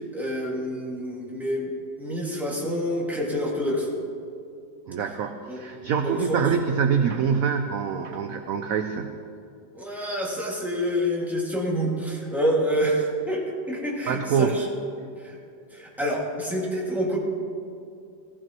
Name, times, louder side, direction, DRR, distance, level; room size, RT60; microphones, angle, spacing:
voice 1, 0.0-1.7 2.0-3.9 5.5-5.6 6.0-6.5 9.7-14.7 15.2-15.4 15.7-17.2, equal, ahead, -4 dB, 1.9 m, -27 dB
voice 2, 4.9-9.1 14.1-14.6, right 7 dB, 75° right, 7 dB, 0.8 m, -25 dB
15.0 x 15.0 x 3.0 m, 2.4 s
omnidirectional pair, 2.1 m